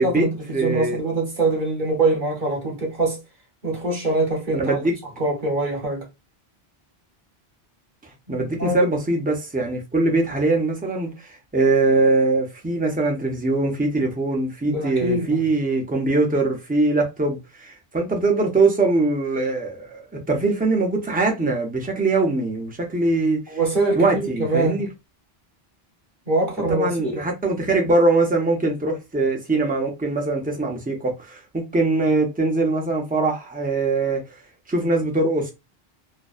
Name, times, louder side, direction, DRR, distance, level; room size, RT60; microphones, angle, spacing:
voice 1, 0.0-3.2 3.6-4.8 5.2-6.1 8.3-8.8 14.7-15.4 23.5-24.8 26.3-27.3, right 2 dB, 50° right, 1.0 m, -24 dB
voice 2, 0.5-1.0 4.5-5.0 8.3-20.0 20.3-23.6 23.9-24.9 26.7-34.2 34.7-35.5, right 3 dB, 15° right, 0.4 m, -22 dB
2.5 x 2.1 x 2.3 m
omnidirectional pair, 1.0 m